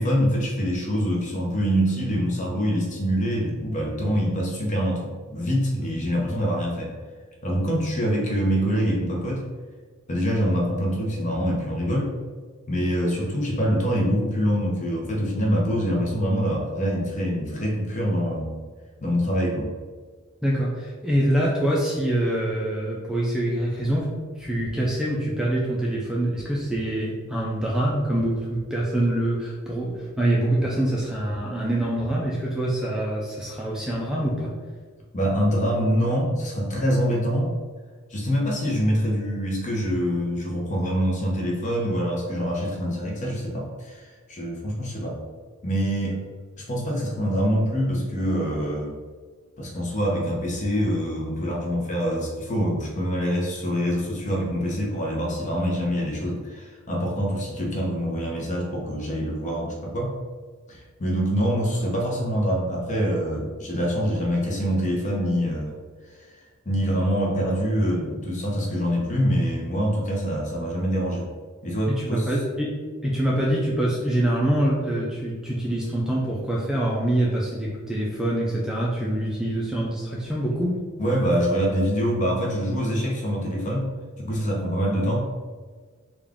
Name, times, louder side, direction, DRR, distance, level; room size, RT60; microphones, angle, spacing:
voice 1, 0.0-6.9 7.4-9.4 10.1-12.1 12.7-18.5 19.0-19.7 35.1-37.5 38.1-45.2 45.6-46.2 46.6-48.9 49.6-60.1 60.7-65.8 66.2-66.3 66.7-71.3 71.6-72.3 81.0-83.9 84.2-85.3, equal, 35° left, -2 dB, 0.8 m, -25 dB
voice 2, 20.4-34.5 71.9-80.8, right 1 dB, 5° right, -5 dB, 0.4 m, -25 dB
3.5 x 2.5 x 3.5 m, 1.5 s
head